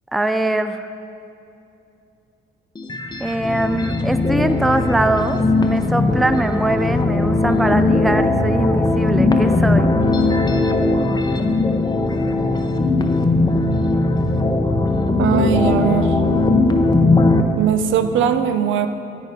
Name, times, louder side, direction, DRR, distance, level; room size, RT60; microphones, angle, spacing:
voice 1, 0.1-0.9 3.2-9.9, right 1 dB, ahead, 9 dB, 0.4 m, -22 dB
sound 1, 2.8-17.4, left 2 dB, 20° left, 0.7 m, -18 dB
voice 2, 15.2-16.1 17.6-18.9, right 8 dB, 75° right, 9 dB, 0.6 m, -19 dB
10.5 x 8.3 x 4.0 m, 2.7 s
cardioid pair, 90°, 20 cm